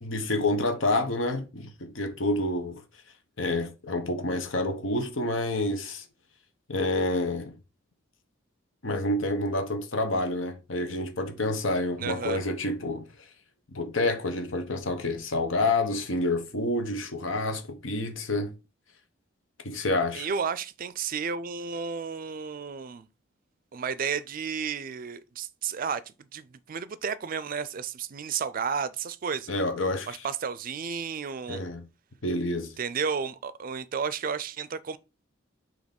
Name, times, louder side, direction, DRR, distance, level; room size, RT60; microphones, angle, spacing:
voice 1, 0.0-2.8 3.4-6.1 6.7-7.5 8.8-13.1 13.7-18.5 19.6-20.3 29.5-30.3 31.5-31.8 32.2-32.7, left 2 dB, 75° left, 1.1 m, -28 dB
voice 2, 12.0-12.4 20.1-23.1 23.7-29.5 30.1-31.6 32.8-35.0, right 6 dB, 45° right, 0.4 m, -32 dB
6.3 x 2.9 x 5.3 m
head